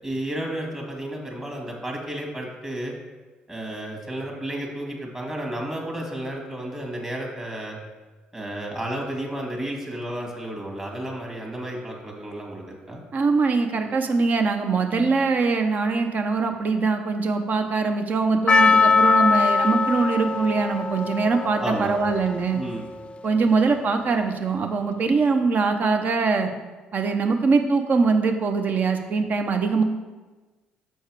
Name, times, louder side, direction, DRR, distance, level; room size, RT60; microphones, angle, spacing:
voice 1, 0.0-2.9 3.5-7.8 8.3-13.0 21.6-21.9 22.5-22.9, right 1 dB, 20° right, 0 dB, 1.8 m, -32 dB
voice 2, 13.1-22.6 23.2-26.5 26.9-29.8, right 4 dB, 45° right, 6 dB, 0.8 m, -22 dB
Percussion, 18.5-23.4, left 4 dB, 30° left, 0.4 m, -22 dB
6.6 x 4.6 x 4.8 m, 1.3 s
supercardioid pair, 60°, 4 cm